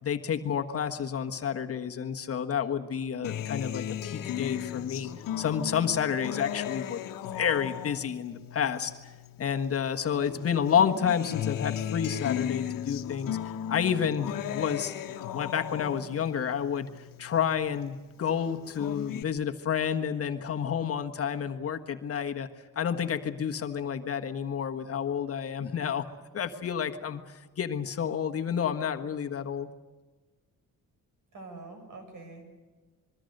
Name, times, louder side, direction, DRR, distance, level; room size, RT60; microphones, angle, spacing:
voice 1, 0.0-5.1 5.4-7.0 7.3-8.9 9.4-16.9 17.2-22.5 22.7-26.1 26.3-29.7, left 8 dB, 45° left, 5 dB, 1.4 m, -30 dB
Acoustic guitar, 3.2-9.9 10.3-17.9 18.3-19.2, left 10 dB, 85° left, 1.3 m, -36 dB
voice 2, 31.3-32.4, right 3 dB, 65° right, 6 dB, 7.2 m, -45 dB
26.0 x 22.5 x 6.7 m, 1.3 s
cardioid pair, 140°, 33 cm